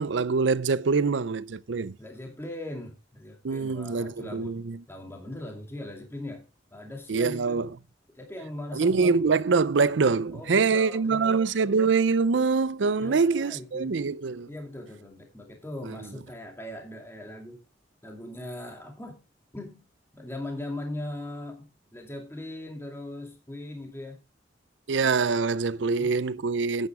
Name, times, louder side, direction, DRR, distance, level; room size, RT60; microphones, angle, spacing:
voice 1, 0.0-1.9 3.4-4.8 7.1-7.7 8.7-14.5 15.8-16.0 24.9-26.9, right 4 dB, 70° right, 0.5 m, -24 dB
voice 2, 2.0-4.6 4.9-7.7 8.2-9.3 10.3-11.4 13.0-13.9 14.5-17.6 18.0-19.2 19.5-19.8 20.1-24.2 25.8-26.1, left 1 dB, 15° left, 2.4 m, -39 dB
11.5 x 9.3 x 3.5 m
head